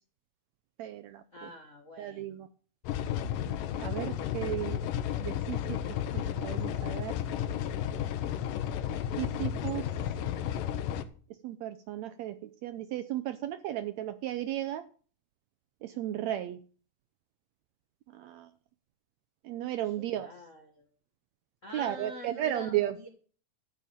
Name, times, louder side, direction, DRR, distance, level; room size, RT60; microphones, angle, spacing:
voice 1, 0.8-1.5 2.0-2.5 3.8-4.8 5.2-5.8 6.1-7.2 9.2-9.9 11.4-14.8 15.8-16.6 18.1-18.5 19.4-20.3 21.7-22.9, right 13 dB, 80° right, 11 dB, 1.6 m, -34 dB
voice 2, 1.3-2.4 20.0-20.9 21.6-23.1, left 1 dB, 65° left, 3 dB, 0.7 m, -46 dB
sound 1, 2.9-11.0, left 10 dB, 90° left, 2.5 m, -33 dB
13.5 x 5.0 x 8.4 m, 0.42 s
omnidirectional pair, 3.8 m